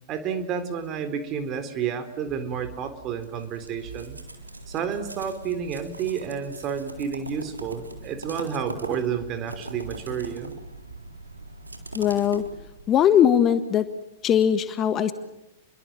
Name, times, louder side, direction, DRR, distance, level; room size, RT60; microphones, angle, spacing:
voice 1, 0.1-4.2 4.7-10.5, right 7 dB, 35° right, 9 dB, 3.9 m, -30 dB
sound 1, 3.2-13.0, right 2 dB, 85° right, 3.6 m, -41 dB
voice 2, 11.9-12.4 12.9-13.9 14.2-15.1, left 9 dB, 30° left, 11 dB, 1.6 m, -20 dB
30.0 x 23.0 x 7.6 m, 0.91 s
figure-of-eight pair, 100°, 0 cm